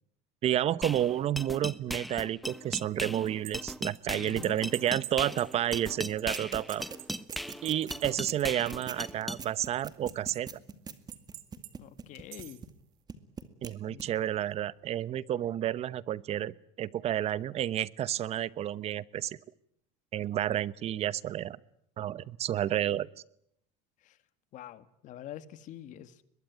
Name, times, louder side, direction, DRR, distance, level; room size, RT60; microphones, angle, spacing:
voice 1, 0.4-6.9 7.6-10.5 13.6-19.4 20.1-21.6 22.0-23.1, right 11 dB, 40° right, 19 dB, 1.0 m, -30 dB
sound 1, 0.8-9.4, equal, ahead, 1.0 m, -38 dB
sound 2, 3.0-9.0 9.3-10.5 11.1-11.7 12.1-12.7, right 18 dB, 70° right, 2.6 m, -47 dB
voice 2, 4.1-4.6 11.8-12.6 13.9-14.1 24.0-24.2 24.5-26.2, left 11 dB, 55° left, 13 dB, 1.9 m, -46 dB
sound 3, 6.3-12.8 13.1-13.7 14.0-14.1, right 6 dB, 25° right, 2.2 m, -42 dB
23.0 x 21.5 x 9.6 m, 0.73 s
supercardioid pair, 120°, 16 cm